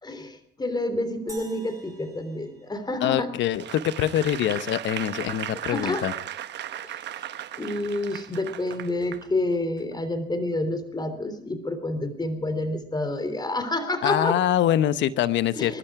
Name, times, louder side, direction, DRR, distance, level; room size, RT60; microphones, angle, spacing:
voice 1, 0.0-3.3 5.7-6.0 6.9-7.0 7.6-14.4 15.6-15.8, left 2 dB, 20° left, 9 dB, 3.4 m, -28 dB
sound 1, 1.3-3.7, right 2 dB, 15° right, 6.5 m, -48 dB
voice 2, 3.0-6.1 14.0-15.8, left 11 dB, 80° left, 14 dB, 1.0 m, -24 dB
Applause / Crowd, 3.5-9.3 9.8-9.9, right 11 dB, 70° right, 1.0 m, -36 dB
22.5 x 12.5 x 4.8 m, 0.70 s
cardioid pair, 75°, 19 cm